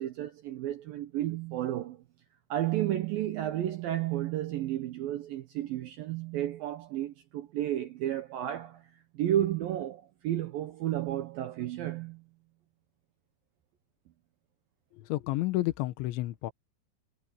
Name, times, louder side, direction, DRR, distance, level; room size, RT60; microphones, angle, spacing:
voice 1, 0.0-2.0 2.5-12.2, right 12 dB, 80° right, 2.1 m, -32 dB
voice 2, 15.1-16.5, left 17 dB, 80° left, 3.4 m, -30 dB
omnidirectional pair, 5.4 m